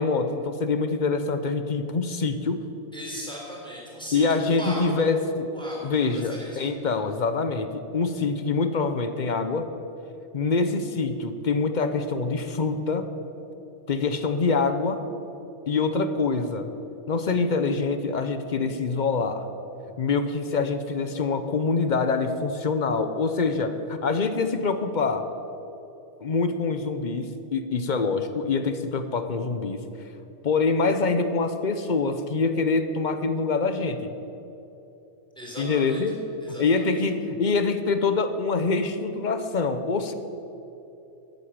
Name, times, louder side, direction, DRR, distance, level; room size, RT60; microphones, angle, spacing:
voice 1, 0.0-2.7 4.1-5.5 5.8-9.7 10.3-13.1 13.9-15.0 15.7-16.7 17.1-19.5 20.0-25.2 26.2-29.8 30.4-34.2 35.6-36.1 36.6-40.1, left 4 dB, 45° left, 9 dB, 0.9 m, -25 dB
voice 2, 2.9-4.9 5.5-6.6 35.4-36.0 36.4-36.9, equal, 5° left, -3 dB, 3.5 m, -38 dB
12.5 x 8.1 x 8.7 m, 2.9 s
omnidirectional pair, 1.2 m